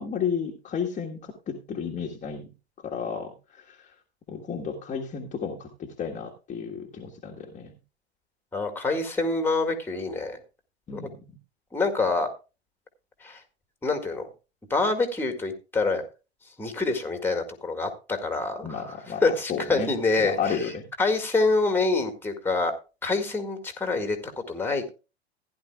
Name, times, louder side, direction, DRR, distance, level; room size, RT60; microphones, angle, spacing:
voice 1, 0.0-2.5 2.8-3.9 4.3-7.7 10.9-11.4 18.6-19.2 19.5-19.9 20.2-20.9, left 6 dB, 25° left, 0 dB, 1.5 m, -32 dB
voice 2, 8.5-10.4 10.9-11.0 11.7-12.3 13.2-13.4 13.8-14.3 14.7-16.0 16.6-20.6 21.0-22.7 23.0-24.9, left 3 dB, 5° left, 7 dB, 1.9 m, -26 dB
15.5 x 10.5 x 2.3 m, 0.30 s
hypercardioid pair, 95°, 32 cm